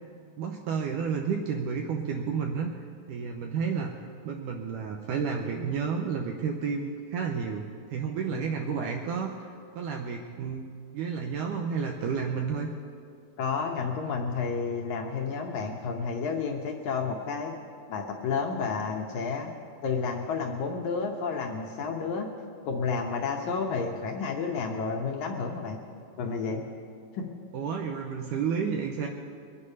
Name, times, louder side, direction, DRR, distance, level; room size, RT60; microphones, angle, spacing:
voice 1, 0.4-2.7 3.1-3.9 4.3-10.6 10.9-12.7 27.5-29.1, right 6 dB, 75° right, 2 dB, 2.0 m, -31 dB
voice 2, 13.4-17.5 17.9-19.5 19.8-22.3 22.7-25.8 26.2-26.6 27.1-27.3, left 5 dB, 75° left, 2 dB, 1.8 m, -31 dB
22.5 x 8.6 x 5.4 m, 2.4 s
omnidirectional pair, 4.2 m